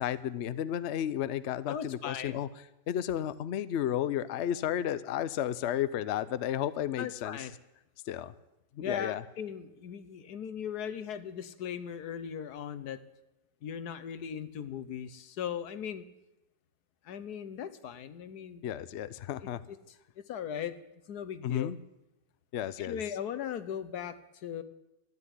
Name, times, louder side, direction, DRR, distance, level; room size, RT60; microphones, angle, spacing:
voice 1, 0.0-2.5 2.9-7.5 8.1-8.3 8.7-9.2 18.6-19.6 21.4-21.8 22.5-23.0, left 10 dB, 80° left, 15 dB, 0.6 m, -32 dB
voice 2, 1.7-2.4 7.0-7.5 8.8-13.0 13.6-16.0 17.1-18.7 20.3-20.7 21.1-21.7 22.8-24.2 24.4-24.6, left 8 dB, 65° left, 13 dB, 1.3 m, -38 dB
13.5 x 10.0 x 9.8 m, 0.94 s
omnidirectional pair, 2.0 m